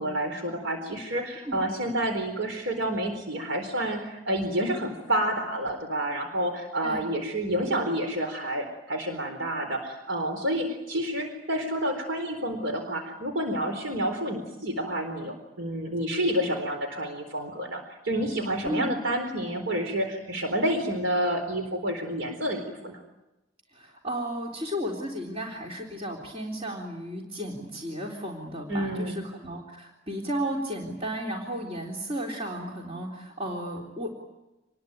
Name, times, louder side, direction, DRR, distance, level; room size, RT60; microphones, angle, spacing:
voice 1, 0.0-23.0 28.7-29.2, right 1 dB, 75° right, 5 dB, 4.2 m, -29 dB
voice 2, 23.7-34.1, equal, 30° right, -1 dB, 3.7 m, -34 dB
27.5 x 20.5 x 9.3 m, 0.99 s
head